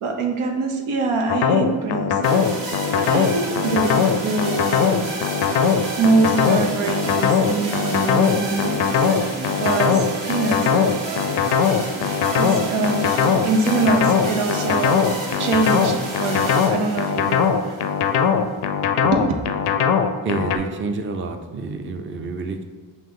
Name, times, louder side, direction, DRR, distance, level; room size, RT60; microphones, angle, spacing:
voice 1, 0.0-4.9 6.0-9.0 9.6-10.9 12.4-15.1 15.4-17.8 19.0-19.3, right 3 dB, 90° right, 3 dB, 0.7 m, -24 dB
sound 1, 1.3-20.6, left 7 dB, 55° left, 0.5 m, -20 dB
sound 2, 2.2-18.3, right 2 dB, 60° right, 1.3 m, -31 dB
voice 2, 20.2-22.6, right 3 dB, 25° right, 5 dB, 0.4 m, -28 dB
5.6 x 2.5 x 3.7 m, 1.5 s
cardioid pair, 60°, 49 cm